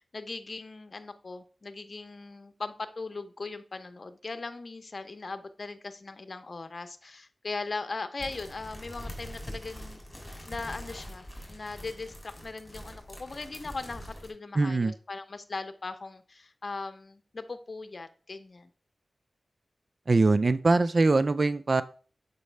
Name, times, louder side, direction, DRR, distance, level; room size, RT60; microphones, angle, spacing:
voice 1, 0.0-10.0 10.4-18.7, left 3 dB, 55° left, 9 dB, 0.7 m, -39 dB
sound 1, 8.2-14.3, equal, 20° left, 3.1 m, -43 dB
voice 2, 14.6-14.9 20.1-21.8, right 3 dB, 55° right, 15 dB, 0.4 m, -22 dB
7.1 x 5.4 x 3.3 m, 0.41 s
cardioid pair, 50°, 0 cm